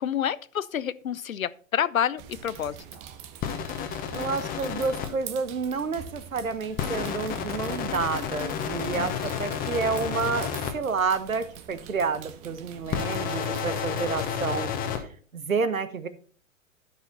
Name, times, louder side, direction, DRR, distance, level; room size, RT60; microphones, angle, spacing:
voice 1, 0.0-2.8 9.0-9.1, left 9 dB, 85° left, 0.6 m, -28 dB
sound 1, 2.2-14.3, right 9 dB, 15° right, 0.4 m, -45 dB
sound 2, 3.4-5.1 6.8-10.7 12.9-15.0, left 8 dB, 20° left, 1.2 m, -31 dB
voice 2, 4.1-14.7 15.3-16.1, right 4 dB, 85° right, 1.1 m, -29 dB
12.5 x 5.6 x 4.1 m
figure-of-eight pair, 115°, 40 cm